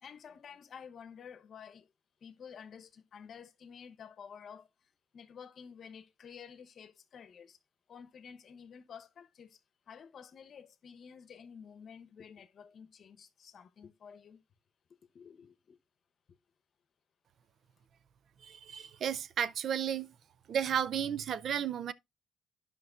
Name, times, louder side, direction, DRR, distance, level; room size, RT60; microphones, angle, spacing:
voice 1, 0.0-1.9 2.2-4.7 5.1-7.6 7.9-9.6 9.9-14.4 15.1-15.8, left 7 dB, 55° left, 0.8 m, -51 dB
voice 2, 18.4-20.1 20.5-21.9, right 8 dB, 65° right, 0.4 m, -33 dB
12.5 x 5.3 x 2.4 m
cardioid pair, 90°, 0 cm